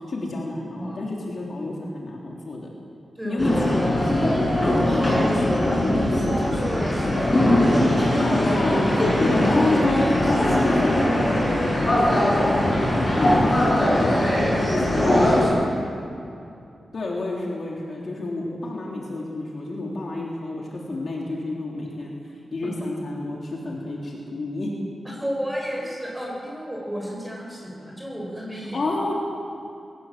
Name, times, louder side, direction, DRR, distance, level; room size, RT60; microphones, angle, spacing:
voice 1, 0.0-2.7 3.2-4.3 8.2-9.0 9.3-12.7 13.6-13.9 16.9-24.7 28.7-29.1, left 2 dB, 50° left, -3 dB, 3.8 m, -29 dB
voice 2, 3.1-3.7 4.9-8.4 9.4-10.1 10.4-10.7 12.8-13.4 13.8-15.9 22.6-22.7 25.2-28.8, equal, 5° right, -3 dB, 7.8 m, -32 dB
sound 1, 3.4-15.5, left 1 dB, 15° left, 7.9 m, -20 dB
22.5 x 19.5 x 7.8 m, 2.6 s
wide cardioid pair, 140°, 0 cm